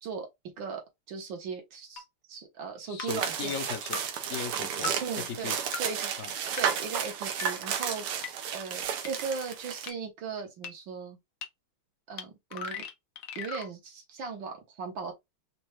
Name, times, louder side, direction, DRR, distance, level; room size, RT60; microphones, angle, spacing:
voice 1, 0.6-2.0 2.3-3.5 5.0-6.1 6.6-11.2 12.1-12.8 13.4-15.1, right 5 dB, 65° right, 1.8 m, -38 dB
sound 1, 2.0-2.1 3.0-3.1 3.9-4.0 4.8-4.9 5.7-5.8 6.6-6.7 7.4-7.5 8.2-8.3 9.0-9.1 9.9-10.0 10.6-10.7 11.4-11.5 12.2-12.3 12.5-13.7, left 6 dB, 85° left, 0.7 m, -37 dB
voice 2, 2.9-4.0 4.3-4.9 5.3-5.5 6.2-6.3, left 7 dB, 50° left, 1.0 m, -37 dB
sound 2, 3.1-9.9, right 8 dB, 90° right, 1.7 m, -33 dB
4.4 x 2.4 x 3.0 m
omnidirectional pair, 2.4 m